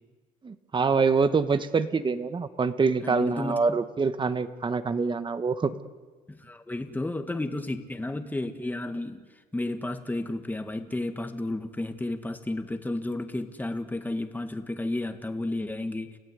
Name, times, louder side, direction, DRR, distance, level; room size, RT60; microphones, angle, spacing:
voice 1, 0.4-5.7, right 4 dB, 30° right, 10 dB, 1.4 m, -25 dB
voice 2, 3.0-3.8 6.3-9.2 9.5-16.2, left 2 dB, 10° left, 6 dB, 1.9 m, -32 dB
30.0 x 15.5 x 8.3 m, 1.3 s
cardioid pair, 95°, 16 cm